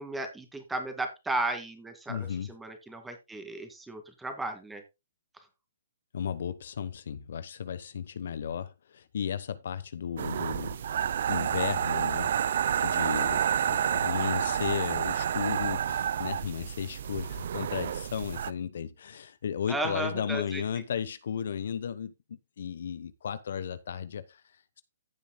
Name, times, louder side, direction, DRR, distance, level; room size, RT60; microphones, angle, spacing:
voice 1, 0.0-4.8 19.7-20.6, right 2 dB, 5° right, 2.2 m, -34 dB
voice 2, 2.1-2.5 6.1-24.8, left 8 dB, 60° left, 1.0 m, -35 dB
sound 1, 10.2-18.5, right 9 dB, 55° right, 0.6 m, -29 dB
15.5 x 7.3 x 2.3 m
hypercardioid pair, 150°, 0 cm